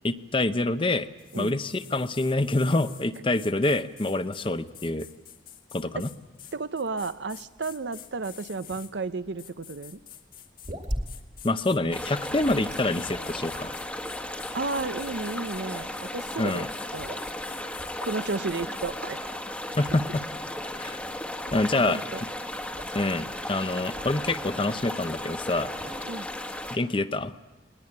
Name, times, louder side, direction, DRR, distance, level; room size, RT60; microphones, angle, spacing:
voice 1, 0.0-1.1 1.3-5.1 5.7-6.1 11.4-13.7 16.4-16.7 19.7-20.2 20.8-21.0 21.5-22.0 22.9-25.7 26.7-27.3, left 2 dB, 30° left, 11 dB, 0.7 m, -26 dB
sound 1, 1.2-8.9 9.4-10.7 11.0-18.9, left 11 dB, 50° left, 1.7 m, -48 dB
sound 2, 6.4-24.5 25.0-26.1, equal, 40° right, 2.1 m, -42 dB
voice 2, 6.5-10.0 14.5-16.7 16.9-17.1 18.1-19.3 21.7-22.2 26.0-26.3, right 3 dB, 75° right, 13 dB, 0.7 m, -33 dB
sound 3, 11.9-26.8, left 1 dB, 10° left, 1.3 m, -35 dB
20.5 x 20.0 x 8.7 m, 1.2 s
head